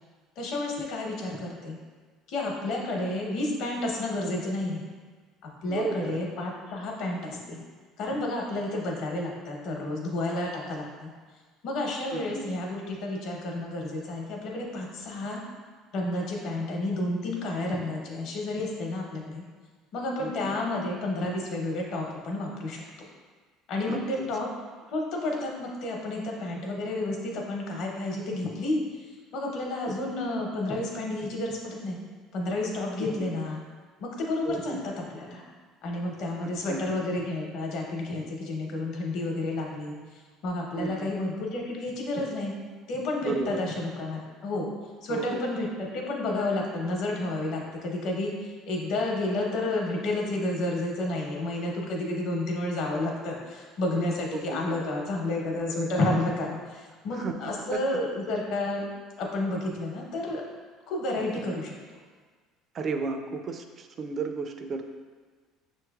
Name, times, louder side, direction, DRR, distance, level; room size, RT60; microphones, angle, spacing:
voice 1, 0.4-1.8 2.3-4.8 5.6-7.6 8.0-11.1 11.6-15.4 15.9-19.4 19.9-23.1 23.7-24.5 24.9-32.0 32.3-33.6 34.0-35.4 35.8-40.0 40.4-42.5 42.9-44.7 45.0-58.9 59.2-60.4 60.9-61.7, left 2 dB, 65° left, 0 dB, 0.9 m, -31 dB
voice 2, 5.7-6.2 12.1-12.4 20.2-20.3 23.9-24.3 29.9-30.0 33.0-33.2 34.4-34.8 36.7-36.9 40.8-41.1 43.2-43.6 45.1-45.4 54.3-54.6 57.1-57.3 57.7-57.8 62.7-64.8, right 4 dB, 35° right, 6 dB, 0.4 m, -33 dB
6.2 x 3.0 x 2.3 m, 1.5 s
cardioid pair, 135°, 0 cm